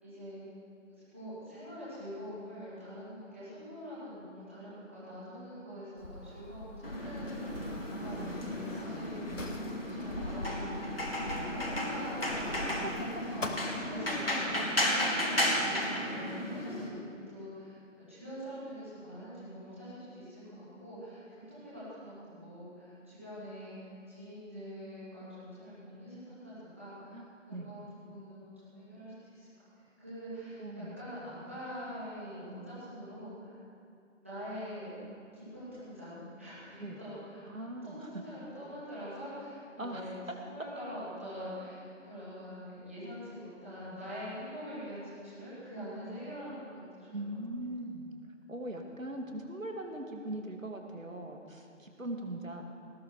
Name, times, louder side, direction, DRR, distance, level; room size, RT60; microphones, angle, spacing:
voice 1, 0.0-0.4 1.1-7.6 8.0-29.6 30.0-33.6 34.2-34.9 35.3-37.4 37.8-47.2, equal, 10° right, -13 dB, 2.5 m, -44 dB
Sliding door, 6.0-14.5, left 2 dB, 70° left, 1.7 m, -43 dB
sound 1, 6.8-16.9, left 1 dB, 45° left, 2.1 m, -34 dB
voice 2, 8.1-9.0 12.6-13.0 13.9-14.4 27.1-27.3 27.5-27.7 30.6-31.4 36.8-37.0 37.5-38.1 39.8-40.1 47.1-48.1 48.5-52.6, right 1 dB, 80° right, 3 dB, 2.2 m, -41 dB
19.0 x 12.5 x 4.8 m, 2.6 s
figure-of-eight pair, 180°, 39 cm